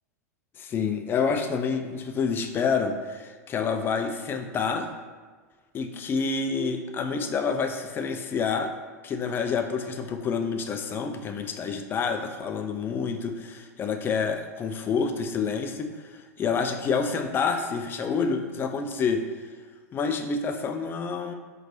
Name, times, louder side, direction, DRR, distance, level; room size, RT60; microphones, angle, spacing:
voice 1, 0.6-4.9 5.7-8.7 9.0-19.2 19.9-21.3, left 5 dB, 25° left, 6 dB, 0.4 m, -28 dB
4.4 x 2.8 x 2.6 m, 1.4 s
figure-of-eight pair, 90°, 9 cm